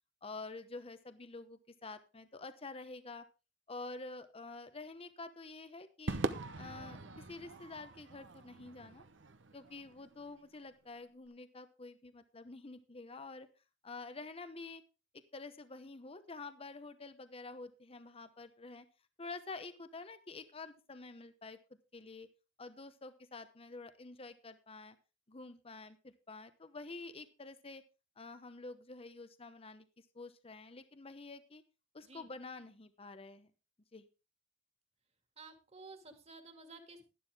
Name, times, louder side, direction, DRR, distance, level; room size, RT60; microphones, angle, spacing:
voice 1, 0.2-3.2 3.7-6.2 6.5-7.0 7.3-9.0 9.5-13.5 13.8-14.8 15.3-18.9 19.2-22.3 22.6-25.0 25.3-27.8 28.2-29.9 30.1-31.6 31.9-33.5 33.9-34.1, left 3 dB, 30° left, 11 dB, 0.9 m, -48 dB
Crowd / Fireworks, 6.1-10.6, right 3 dB, 75° right, 1.0 m, -42 dB
voice 2, 35.4-37.1, right 3 dB, 35° right, 6 dB, 2.3 m, -53 dB
12.0 x 12.0 x 3.5 m, 0.30 s
head